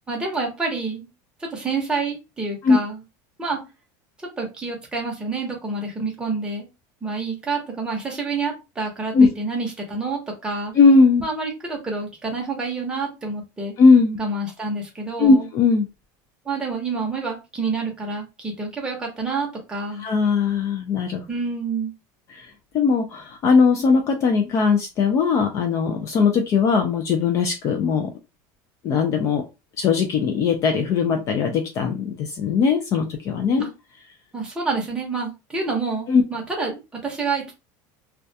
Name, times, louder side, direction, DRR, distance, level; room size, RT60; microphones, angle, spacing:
voice 1, 0.1-1.1 1.4-3.0 3.4-3.6 4.4-6.7 7.0-10.7 11.2-13.7 14.2-15.5 16.5-20.1 21.3-21.9 33.6-33.7 34.3-37.5, right 4 dB, 10° right, 0 dB, 0.7 m, -28 dB
voice 2, 10.7-11.2 13.8-14.2 15.2-15.9 20.0-21.2 22.3-22.4 22.7-28.1 28.8-29.4 29.8-33.7 36.1-36.2, left 5 dB, 35° left, 4 dB, 0.3 m, -19 dB
2.2 x 2.2 x 2.6 m, 0.26 s
cardioid pair, 165°, 9 cm